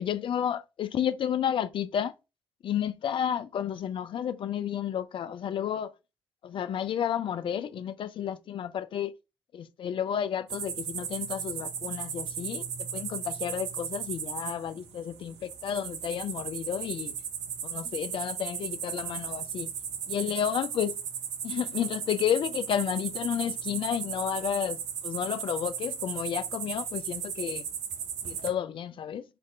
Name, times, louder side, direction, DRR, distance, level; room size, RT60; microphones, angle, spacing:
voice 1, 0.0-2.1 2.6-5.9 6.4-9.1 9.5-12.7 12.9-17.1 17.6-19.7 20.1-21.0 21.4-27.6 28.2-29.2, left 9 dB, 40° left, 0.4 m, -31 dB
sound 1, 10.5-28.5, right 8 dB, 60° right, 0.6 m, -36 dB
2.6 x 2.5 x 3.2 m
figure-of-eight pair, 45°, 13 cm